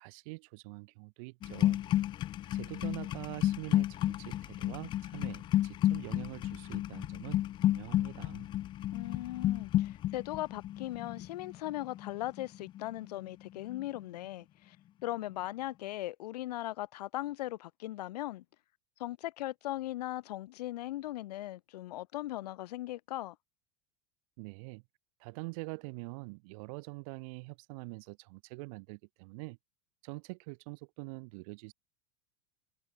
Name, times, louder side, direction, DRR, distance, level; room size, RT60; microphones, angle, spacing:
voice 1, 0.0-1.8 2.5-8.5 24.4-24.8 25.2-29.6 30.0-31.7, right 29 dB, 60° right, 2.1 m, -45 dB
sound 1, 1.4-13.3 13.5-14.0, left 13 dB, 25° left, 0.4 m, -32 dB
voice 2, 8.9-14.8 15.0-18.4 19.0-23.3, left 15 dB, 85° left, 3.2 m, -39 dB
supercardioid pair, 150°, 20 cm